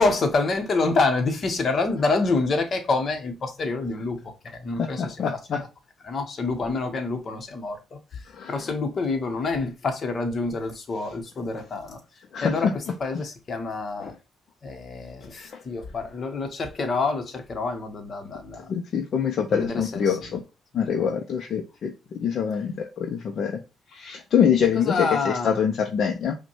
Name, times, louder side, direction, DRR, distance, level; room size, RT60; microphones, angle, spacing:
voice 1, 0.0-5.4 6.0-12.0 12.4-14.1 14.6-18.8 19.5-20.2 20.7-21.1 24.7-25.6, left 3 dB, 45° left, 1.0 m, -27 dB
voice 2, 4.8-5.6 8.3-8.6 11.5-11.6 12.3-12.7 14.0-14.1 15.5-15.6 18.7-20.4 20.7-23.6 23.9-26.4, left 7 dB, 65° left, 0.5 m, -25 dB
5.0 x 2.2 x 2.9 m
cardioid pair, 90°, 0 cm